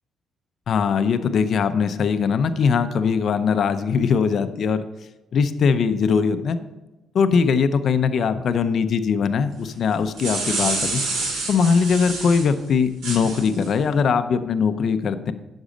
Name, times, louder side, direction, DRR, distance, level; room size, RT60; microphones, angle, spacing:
voice 1, 0.7-4.8 5.3-6.6 7.1-11.0 11.5-15.3, left 6 dB, 60° left, 10 dB, 0.7 m, -21 dB
sound 1, 9.9-12.5 13.0-13.7, right 3 dB, 85° right, 2.3 m, -27 dB
10.0 x 6.3 x 5.2 m, 1.1 s
cardioid pair, 90°, 0 cm